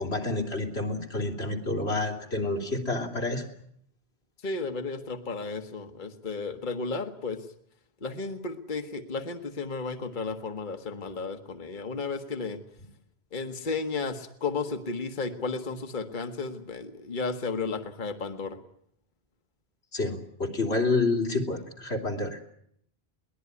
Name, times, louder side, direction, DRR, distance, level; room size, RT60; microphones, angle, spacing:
voice 1, 0.0-3.4 19.9-22.4, left 2 dB, 85° left, 2 dB, 3.4 m, -29 dB
voice 2, 4.4-7.4 8.0-12.6 13.3-18.6, left 4 dB, 50° left, 7 dB, 1.5 m, -33 dB
22.5 x 19.0 x 9.7 m, 0.70 s
omnidirectional pair, 1.1 m